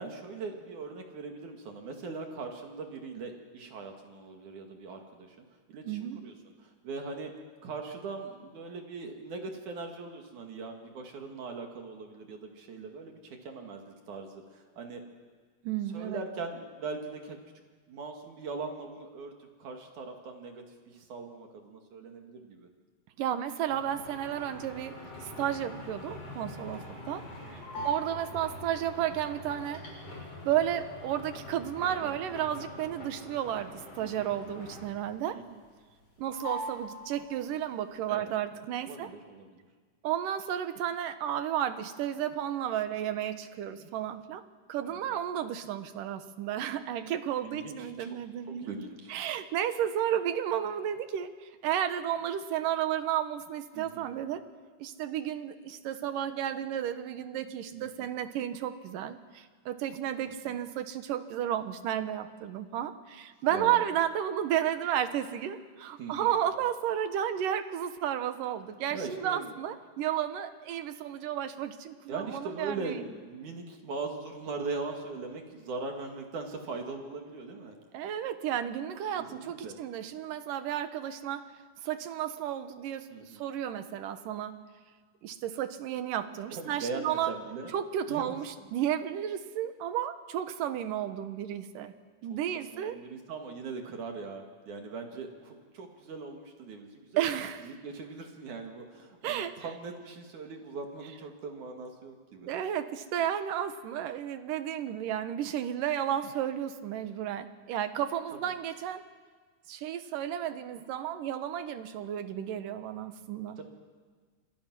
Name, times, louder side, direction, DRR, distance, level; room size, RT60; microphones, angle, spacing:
voice 1, 0.0-7.3 7.6-15.0 15.9-17.4 17.9-22.7 26.7-27.0 27.8-27.9 32.0-32.2 34.0-34.3 35.3-35.6 38.1-38.3 38.8-39.7 42.9-43.0 44.9-45.0 47.4-48.2 48.5-49.2 53.7-54.1 57.7-58.1 60.5-60.6 63.5-63.8 66.0-66.3 68.9-69.5 72.1-77.8 79.1-79.8 83.1-83.4 86.5-87.7 88.1-88.7 92.3-97.3 97.6-102.5 108.5-108.6 112.3-112.6 113.6-113.7, right 4 dB, 70° right, 3 dB, 3.4 m, -41 dB
voice 2, 5.9-6.2 15.6-16.2 23.2-24.9 25.2-27.3 27.5-29.8 30.4-35.4 36.2-39.1 40.0-44.4 44.7-48.8 49.1-54.4 54.8-73.0 77.9-81.5 81.8-84.6 85.2-87.3 87.7-91.9 92.2-93.0 97.2-97.8 99.2-99.5 102.4-109.0 109.7-113.6, right 10 dB, 85° right, 10 dB, 2.8 m, -32 dB
sound 1, 23.7-35.2 35.5-36.1 36.3-37.6, left 1 dB, 50° left, 7.1 m, -43 dB
28.5 x 25.5 x 6.1 m, 1.5 s
omnidirectional pair, 3.7 m